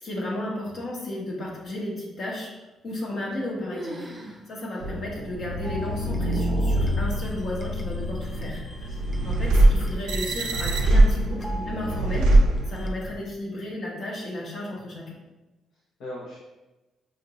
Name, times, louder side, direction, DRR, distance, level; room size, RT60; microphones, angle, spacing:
voice 1, 0.0-2.5 2.8-8.9 9.2-12.3 12.7-15.1, left 1 dB, 55° left, -3 dB, 1.0 m, -33 dB
sound 1, 2.9-3.4 3.7-4.4 4.8-4.9 5.5-5.6 6.4-6.8, right 1 dB, 25° right, 0.6 m, -39 dB
sound 2, 4.8-13.1, right 1 dB, 85° right, 0.5 m, -23 dB
sound 3, 5.6-12.9, equal, 20° left, 0.4 m, -45 dB
voice 2, 8.8-9.1 15.7-16.4, left 1 dB, 85° left, -6 dB, 0.8 m, -41 dB
4.9 x 2.5 x 2.9 m, 1.1 s
cardioid pair, 90°, 0 cm